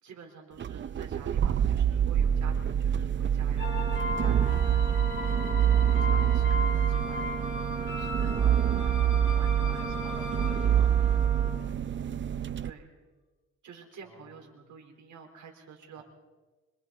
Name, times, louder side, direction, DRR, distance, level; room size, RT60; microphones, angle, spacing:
voice 1, 0.0-5.0 5.5-7.3 7.8-8.4 8.7-9.0 9.3-10.1 12.6-12.9 13.6-16.0, right 6 dB, 85° right, 2 dB, 4.4 m, -49 dB
sound 1, 0.6-12.7, right 9 dB, 40° right, 0.6 m, -26 dB
sound 2, 3.6-11.5, left 3 dB, 45° left, 3.8 m, -38 dB
Wind instrument woodwind instrument, 3.6-11.6, right 1 dB, 25° right, 3.4 m, -40 dB
voice 2, 8.3-9.0 9.6-11.8 14.0-14.7 15.9-16.0, equal, ahead, -2 dB, 7.0 m, -52 dB
26.0 x 24.0 x 4.2 m, 1.2 s
cardioid pair, 110°, 30 cm